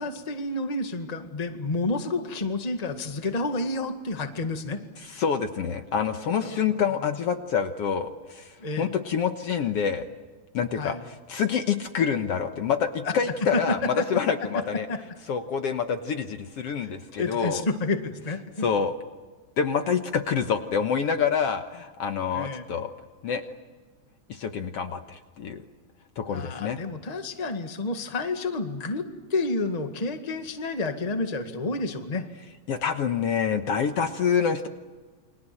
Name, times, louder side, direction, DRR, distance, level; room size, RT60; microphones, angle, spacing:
voice 1, 0.0-4.8 6.4-6.7 8.6-8.9 10.7-11.0 13.5-13.6 14.0-14.1 14.9-15.0 16.8-18.6 22.3-22.6 26.3-32.3, left 2 dB, 15° left, 6 dB, 1.5 m, -30 dB
voice 2, 5.0-10.1 10.5-14.9 15.3-17.6 18.6-19.0 19.6-22.9 23.2-23.4 24.3-25.6 26.2-26.8 32.7-34.7, left 6 dB, 60° left, 7 dB, 2.0 m, -27 dB
29.5 x 25.0 x 7.8 m, 1.3 s
omnidirectional pair, 3.4 m